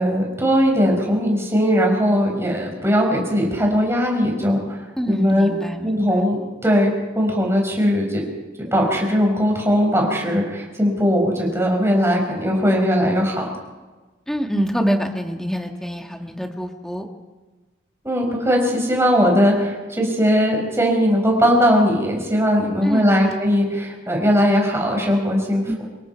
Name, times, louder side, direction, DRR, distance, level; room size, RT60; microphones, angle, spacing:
voice 1, 0.0-5.5 5.8-8.2 8.6-13.5 18.0-25.7, equal, 15° right, 0 dB, 5.5 m, -19 dB
voice 2, 5.0-6.2 14.3-17.1 22.8-23.3 25.7-25.8, equal, 5° left, 3 dB, 1.9 m, -25 dB
26.0 x 22.0 x 4.7 m, 1.2 s
head